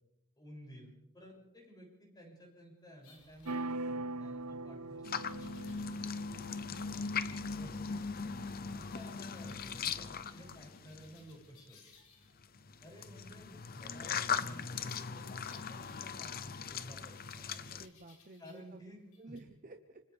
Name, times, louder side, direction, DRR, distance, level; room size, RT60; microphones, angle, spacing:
voice 1, 0.4-5.8 7.6-8.0 8.7-11.8 12.8-17.8 18.4-19.4, equal, 20° left, -1 dB, 7.4 m, -54 dB
sound 1, 3.0-4.2 5.0-6.4 6.7-7.2 9.4-10.0 10.7-12.5 15.4-16.7 17.5-18.8 19.1-19.4, left 5 dB, 85° left, 5.3 m, -64 dB
sound 2, 3.4-7.2, right 2 dB, 80° right, 0.7 m, -41 dB
sound 3, 5.0-11.3 12.4-17.9, left 6 dB, 45° left, 0.8 m, -39 dB
voice 2, 6.5-6.9 17.6-18.8 19.2-20.0, right 2 dB, 40° right, 4 dB, 1.0 m, -53 dB
29.0 x 25.5 x 3.5 m, 0.85 s
head